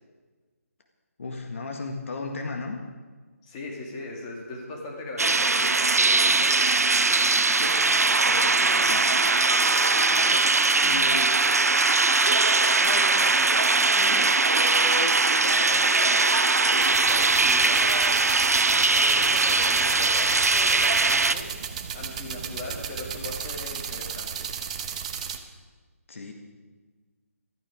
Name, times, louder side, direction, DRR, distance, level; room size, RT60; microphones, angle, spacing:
voice 1, 1.2-2.8 26.1-26.3, left 3 dB, 55° left, 3 dB, 1.8 m, -34 dB
voice 2, 3.4-6.6 7.1-11.4 12.7-18.2 18.9-21.5 21.9-24.5, left 2 dB, 20° left, -1 dB, 2.6 m, -38 dB
sound 1, 5.2-21.3, right 3 dB, 85° right, 0.8 m, -21 dB
sound 2, 16.8-25.4, right 7 dB, 25° right, 0.9 m, -35 dB
15.5 x 13.0 x 5.1 m, 1.4 s
figure-of-eight pair, 160°, 8 cm